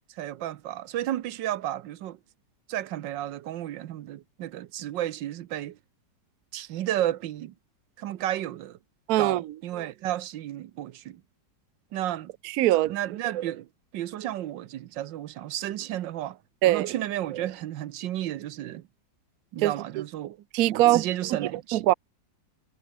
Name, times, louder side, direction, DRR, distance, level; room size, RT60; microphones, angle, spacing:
voice 1, 0.1-2.2 2.7-5.8 6.5-7.5 8.0-8.8 9.2-11.2 11.9-12.3 12.9-13.7 13.9-16.4 16.6-18.8 19.5-20.4 20.7-21.9, right 13 dB, 85° right, 1.5 m, -32 dB
voice 2, 9.1-9.4 12.4-12.9 16.6-16.9 19.6-19.7 20.5-21.4 21.7-21.9, right 15 dB, 65° right, 1.0 m, -22 dB
omnidirectional pair, 2.0 m